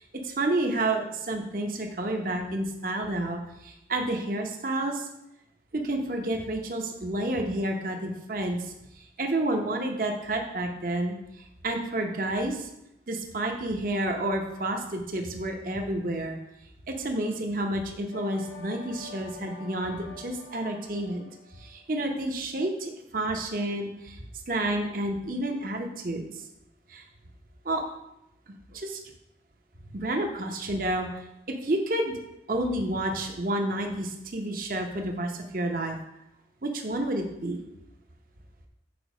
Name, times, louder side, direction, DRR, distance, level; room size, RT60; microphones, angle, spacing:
voice 1, 0.0-5.1 5.7-12.7 13.1-16.4 16.9-21.3 21.6-24.2 24.5-26.3 26.9-27.0 27.6-27.8 28.5-29.0 29.9-32.2 32.5-36.0 36.6-37.6, right 1 dB, 50° right, 3 dB, 0.9 m, -30 dB
sound 1, 18.1-21.8, left 4 dB, 80° left, 1.2 m, -46 dB
6.9 x 4.5 x 5.1 m, 0.85 s
head